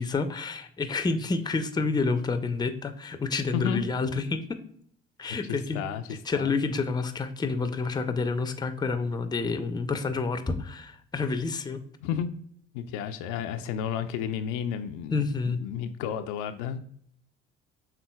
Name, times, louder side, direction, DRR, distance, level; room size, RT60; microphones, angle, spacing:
voice 1, 0.0-4.6 5.2-11.8 15.1-15.6, left 4 dB, 15° left, 9 dB, 0.5 m, -29 dB
voice 2, 5.2-6.0 6.3-6.5 12.0-12.3 12.7-16.8, left 8 dB, 65° left, 8 dB, 0.5 m, -32 dB
5.8 x 3.6 x 2.2 m, 0.64 s
hypercardioid pair, 55°, 32 cm